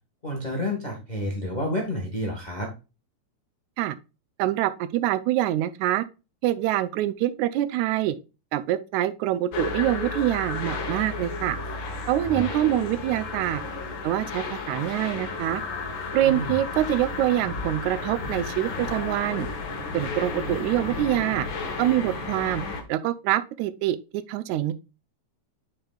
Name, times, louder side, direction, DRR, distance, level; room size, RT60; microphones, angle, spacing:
voice 1, 0.2-2.7 12.2-12.4 16.2-16.5, left 1 dB, 30° left, 0.8 m, -30 dB
voice 2, 4.4-6.0 6.4-8.2 8.5-11.6 12.1-13.6 14.0-15.6 16.1-19.5 19.9-21.5 21.8-22.6 22.9-24.7, right 13 dB, 85° right, 1.9 m, -25 dB
sound 1, 9.5-22.8, left 3 dB, 55° left, 1.5 m, -33 dB
9.0 x 5.1 x 2.3 m
omnidirectional pair, 3.3 m